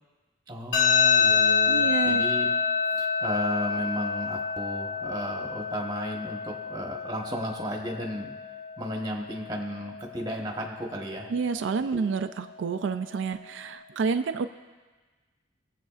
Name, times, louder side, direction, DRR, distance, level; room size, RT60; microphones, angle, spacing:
voice 1, 0.5-2.5 2.9-8.3 8.8-11.3 11.8-12.1, equal, 20° right, 0 dB, 1.1 m, -34 dB
sound 1, 0.7-13.7, left 5 dB, 90° left, 2.2 m, -28 dB
voice 2, 1.7-2.2 11.3-14.5, right 5 dB, 80° right, 9 dB, 0.4 m, -29 dB
22.5 x 7.6 x 2.4 m, 1.3 s
head